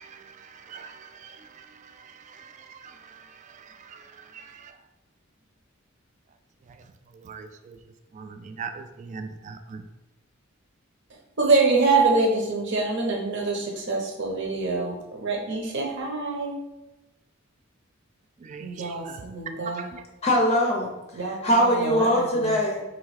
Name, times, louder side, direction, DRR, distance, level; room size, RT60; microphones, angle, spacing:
voice 1, 0.0-4.7 7.1-7.8 8.1-9.8 18.4-19.2 19.8-20.0, right 5 dB, 35° right, 7 dB, 0.3 m, -42 dB
voice 2, 11.4-16.5 18.6-19.9 21.1-22.5, right 3 dB, 60° right, -1 dB, 1.0 m, -25 dB
voice 3, 20.2-20.9 21.3-22.8, equal, 30° left, 0 dB, 0.5 m, -22 dB
3.5 x 3.1 x 4.8 m, 0.99 s
head